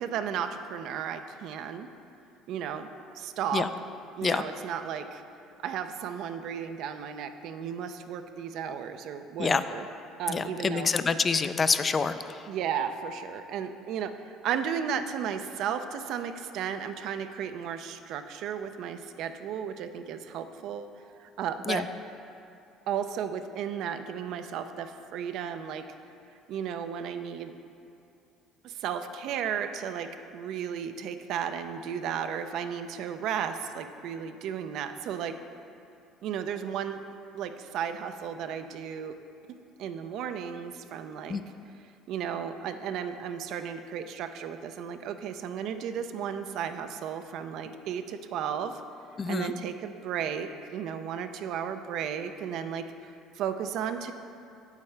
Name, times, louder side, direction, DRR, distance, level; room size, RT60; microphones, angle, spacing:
voice 1, 0.0-1.9 2.5-2.9 3.1-3.7 4.2-5.2 5.6-9.9 10.2-10.9 12.5-20.9 21.2-21.9 22.9-25.8 26.5-27.5 28.6-35.3 36.2-37.0 37.3-39.1 39.5-41.4 42.1-48.8 49.3-53.1 53.4-54.1, right 8 dB, 65° right, 9 dB, 0.5 m, -34 dB
voice 2, 10.3-12.1 21.7-21.8 41.3-41.4 49.2-49.5, left 5 dB, 35° left, 11 dB, 0.4 m, -26 dB
8.3 x 8.2 x 3.3 m, 2.7 s
supercardioid pair, 80°, 0 cm